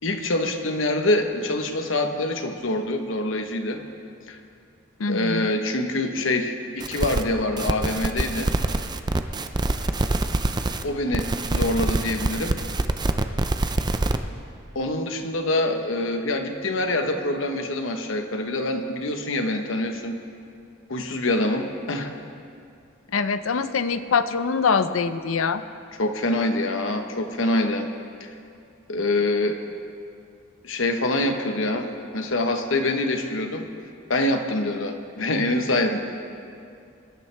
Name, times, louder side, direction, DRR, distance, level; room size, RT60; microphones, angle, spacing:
voice 1, 0.0-3.8 4.3-4.4 5.1-8.5 10.0-10.1 10.8-12.6 14.7-20.2 20.9-22.1 26.0-27.9 28.2-28.3 28.9-29.6 30.6-33.7 34.1-36.0, left 2 dB, 70° left, 5 dB, 1.1 m, -25 dB
voice 2, 5.0-5.5 23.1-25.6, left 5 dB, 85° left, 12 dB, 0.6 m, -24 dB
sound 1, 6.8-7.2 7.6-10.8 11.1-14.2, right 2 dB, 20° right, 0.5 m, -25 dB
22.5 x 11.5 x 3.4 m, 2.4 s
head